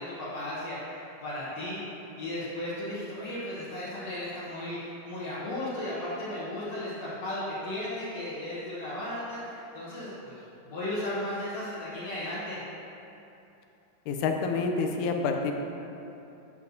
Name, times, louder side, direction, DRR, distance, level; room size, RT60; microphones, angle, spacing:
voice 1, 0.0-1.8 2.2-12.6, left 1 dB, 65° left, -9 dB, 2.1 m, -35 dB
voice 2, 14.1-15.5, left 4 dB, 90° left, 4 dB, 2.1 m, -28 dB
9.4 x 7.3 x 2.6 m, 2.8 s
omnidirectional pair, 3.5 m